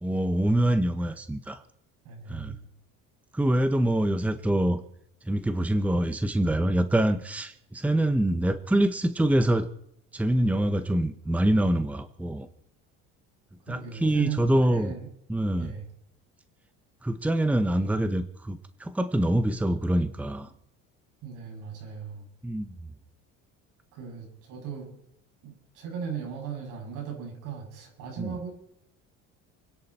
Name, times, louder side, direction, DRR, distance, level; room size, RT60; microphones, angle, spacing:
voice 1, 0.0-1.6 2.3-2.6 3.3-4.8 5.2-9.7 10.1-12.5 13.7-14.9 15.3-15.7 17.0-20.5 22.4-22.7 28.2-28.4, right 1 dB, 5° right, 9 dB, 1.0 m, -25 dB
voice 2, 2.0-2.7 13.7-15.1 15.6-15.9 21.2-22.3 23.9-25.0 25.4-28.5, right 7 dB, 75° right, 1 dB, 7.4 m, -37 dB
29.0 x 10.5 x 4.4 m, 0.72 s
cardioid pair, 115°, 32 cm